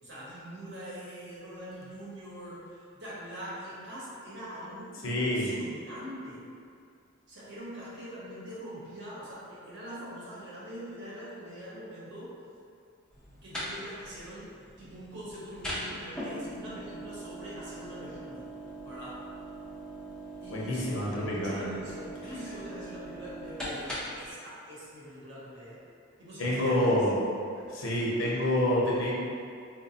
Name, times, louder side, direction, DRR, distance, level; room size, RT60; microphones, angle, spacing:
voice 1, 0.0-6.4 7.3-12.3 13.4-14.5 14.8-18.4 18.8-19.2 20.4-25.8 26.2-27.0, equal, 55° right, -8 dB, 0.8 m, -43 dB
voice 2, 5.0-5.5 20.5-21.7 26.4-27.2 27.7-29.1, left 1 dB, 70° left, -5 dB, 0.7 m, -27 dB
sound 1, 13.1-24.3, right 1 dB, 5° left, 0.4 m, -41 dB
4.0 x 2.1 x 2.7 m, 2.3 s
head